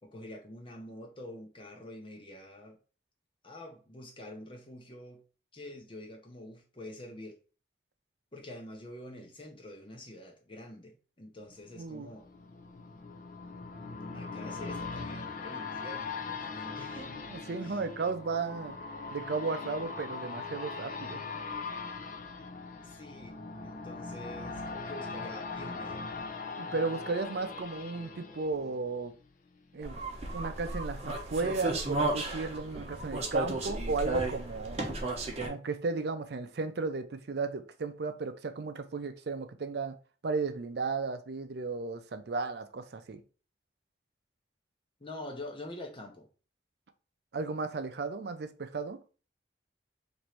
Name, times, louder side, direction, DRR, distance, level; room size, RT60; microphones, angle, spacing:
voice 1, 0.0-2.8 3.4-5.2 5.5-7.4 8.3-12.3 14.1-17.1 17.6-17.8 22.8-26.2 45.0-46.3, left 1 dB, 30° left, 0.8 m, -46 dB
sound 1, 11.5-29.3 29.7-29.8, left 4 dB, 45° left, 0.4 m, -41 dB
voice 2, 11.8-12.1 17.3-18.8 19.1-21.2 26.6-29.1 29.7-30.0 30.3-34.8 35.5-40.0 40.2-43.2 47.3-49.0, right 4 dB, 65° right, 0.5 m, -34 dB
sound 2, 29.8-35.5, right 2 dB, 35° right, 0.8 m, -34 dB
3.1 x 2.6 x 4.3 m
head